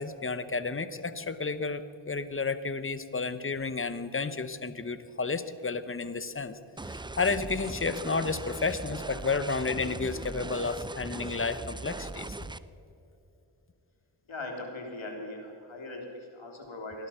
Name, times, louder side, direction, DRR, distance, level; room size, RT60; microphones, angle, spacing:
voice 1, 0.0-12.4, left 4 dB, 25° left, 12 dB, 1.0 m, -32 dB
sound 1, 6.8-12.6, right 2 dB, 10° right, 0.4 m, -39 dB
voice 2, 14.3-17.1, left 2 dB, 65° left, 1 dB, 3.3 m, -40 dB
19.0 x 11.5 x 5.8 m, 2.8 s
cardioid pair, 55°, 49 cm